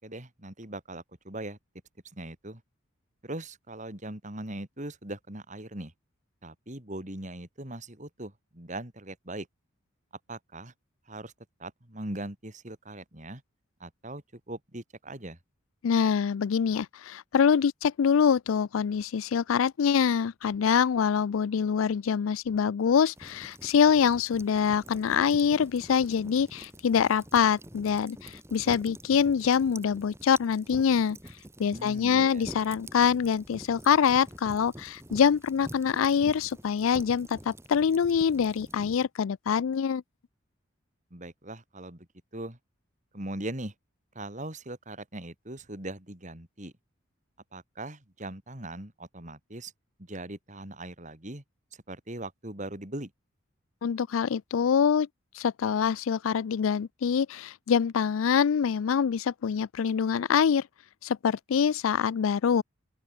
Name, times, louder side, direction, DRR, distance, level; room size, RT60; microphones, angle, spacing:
voice 1, 0.0-1.6 2.1-2.6 3.2-5.9 6.4-9.5 10.3-10.7 11.1-11.3 11.6-13.4 13.8-15.4 31.7-32.4 41.1-42.1 42.3-42.6 43.1-43.7 44.1-46.7 47.5-49.7 50.0-51.4 51.7-53.1, right 1 dB, 35° right, 3.2 m, -40 dB
voice 2, 15.8-31.2 31.6-40.0 53.8-55.1 55.3-60.6 61.0-62.6, left 7 dB, 80° left, 0.4 m, -25 dB
sound 1, 23.2-39.0, right 1 dB, 15° right, 4.9 m, -47 dB
open air
head